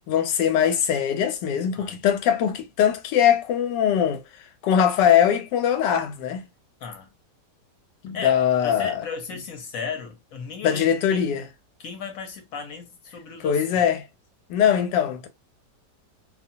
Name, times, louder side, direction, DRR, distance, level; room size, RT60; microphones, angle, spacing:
voice 1, 0.1-4.2 4.6-6.5 8.0-8.9 10.6-11.5 13.4-14.1 14.5-15.3, left 9 dB, 90° left, 1.2 m, -21 dB
voice 2, 6.8-7.1 8.1-10.9 11.1-11.2 11.8-13.6, left 5 dB, 60° left, 1.0 m, -35 dB
2.7 x 2.2 x 2.6 m
omnidirectional pair, 1.8 m